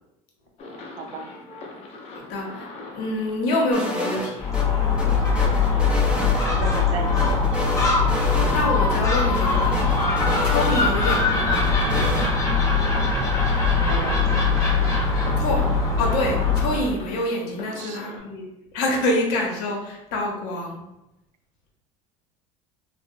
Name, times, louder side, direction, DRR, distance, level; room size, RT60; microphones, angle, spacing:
sound 1, 0.6-18.2, left 2 dB, 45° left, 0.6 m, -41 dB
voice 1, 0.8-1.3 6.5-7.7 13.8-14.2 17.8-18.0, right 5 dB, 55° right, 6 dB, 0.4 m, -34 dB
voice 2, 2.1-4.5 8.5-10.0 10.4-11.6 15.4-15.7 16.0-18.4 18.7-20.8, left 1 dB, 75° left, 0 dB, 0.8 m, -26 dB
sound 2, 3.7-4.6 5.0-6.8 7.2-8.6 8.9-9.0 9.3-11.2 11.5-12.3, equal, 5° right, 0.6 m, -30 dB
Gull seagull, 4.4-16.8, left 4 dB, 20° left, 0.8 m, -21 dB
2.7 x 2.1 x 2.6 m, 0.91 s
supercardioid pair, 110°, 15 cm